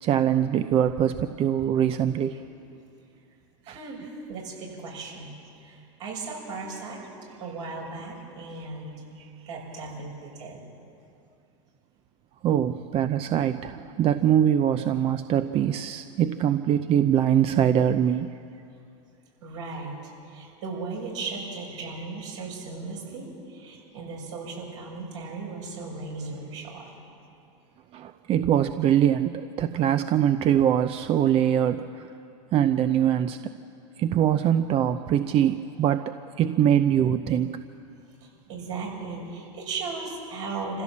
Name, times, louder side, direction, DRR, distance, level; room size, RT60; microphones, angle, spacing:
voice 1, 0.0-2.3 3.7-3.8 12.4-18.3 27.9-32.1 32.5-33.4 34.0-37.6, right 10 dB, 35° right, 10 dB, 0.6 m, -23 dB
voice 2, 3.6-7.1 7.4-8.9 9.5-10.7 19.4-26.9 38.1-40.8, right 3 dB, 70° right, -2 dB, 7.0 m, -37 dB
26.0 x 15.5 x 7.4 m, 2.6 s
hypercardioid pair, 110°, 17 cm